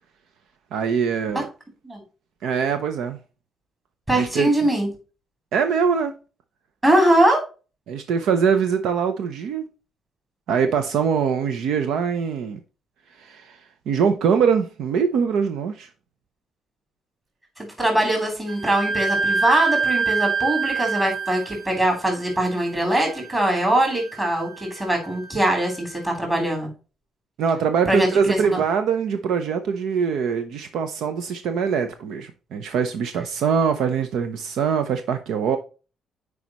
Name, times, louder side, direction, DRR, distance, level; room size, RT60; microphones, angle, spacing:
voice 1, 0.7-1.5 2.4-3.2 4.1-4.5 5.5-6.1 7.9-9.7 10.5-12.6 13.2-13.6 13.9-15.9 27.4-35.6, right 6 dB, 75° right, 0.7 m, -23 dB
voice 2, 4.1-4.9 6.8-7.4 17.6-26.7 27.9-28.6, right 1 dB, 15° right, 3.3 m, -22 dB
Wind instrument woodwind instrument, 18.5-25.9, right 4 dB, 40° right, 1.6 m, -27 dB
9.3 x 4.9 x 3.0 m
cardioid pair, 155°, 0 cm